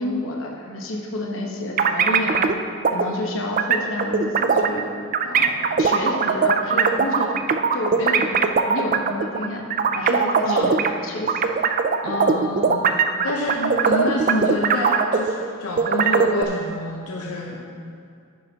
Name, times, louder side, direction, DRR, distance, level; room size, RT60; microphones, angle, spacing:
voice 1, 0.0-2.6 2.9-4.9 5.2-7.5 7.7-9.6 9.9-10.8 11.0-11.4 13.6-13.7, left 1 dB, 60° left, 0 dB, 1.1 m, -29 dB
sound 1, 1.8-2.6 2.8-3.1 3.6-4.8 5.1-10.9 11.3-15.5 15.8-16.4, right 5 dB, 35° right, 0.3 m, -20 dB
voice 2, 10.4-10.8 12.0-13.0 13.2-17.6, left 1 dB, 80° left, -1 dB, 0.8 m, -27 dB
10.5 x 9.0 x 2.9 m, 2.2 s
head